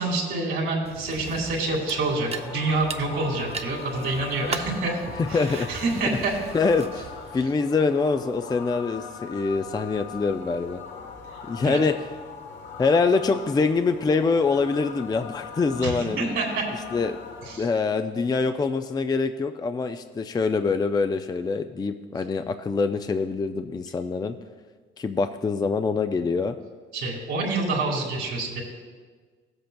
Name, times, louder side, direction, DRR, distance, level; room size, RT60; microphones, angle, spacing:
voice 1, 0.0-5.0 5.3-6.4 11.6-11.8 15.8-16.7 17.5-17.7 26.9-28.6, right 3 dB, 80° right, -1 dB, 2.3 m, -27 dB
sound 1, 0.8-7.4, right 5 dB, 30° right, 0.6 m, -39 dB
sound 2, 1.7-17.6, left 5 dB, 70° left, 1.1 m, -41 dB
voice 2, 5.2-5.8 6.5-10.8 11.5-11.9 12.8-16.3 16.9-17.2 17.6-24.3 25.0-26.5, left 4 dB, 20° left, 8 dB, 0.4 m, -24 dB
16.0 x 7.8 x 2.2 m, 1.5 s
cardioid pair, 90°, 20 cm